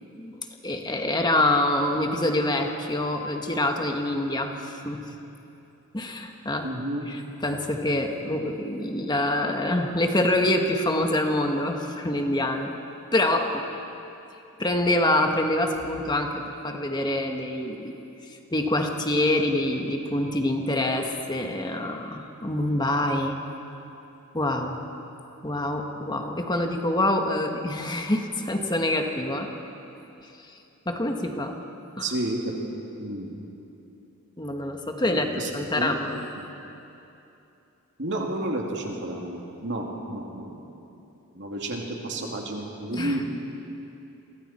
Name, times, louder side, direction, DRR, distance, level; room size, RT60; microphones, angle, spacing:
voice 1, 0.2-5.0 5.9-6.7 7.1-12.7 13.1-13.7 14.6-17.9 18.2-23.4 24.3-24.8 25.4-29.5 30.2-30.3 30.8-31.6 32.0-32.1 34.4-36.2 42.9-43.2, left 1 dB, 20° left, 3 dB, 1.5 m, -26 dB
voice 2, 6.6-7.1 32.0-32.6 33.0-33.3 35.0-36.0 36.4-36.5 38.0-40.8 41.3-43.3, right 1 dB, 55° right, 0 dB, 2.7 m, -31 dB
29.0 x 23.5 x 4.4 m, 2.9 s
head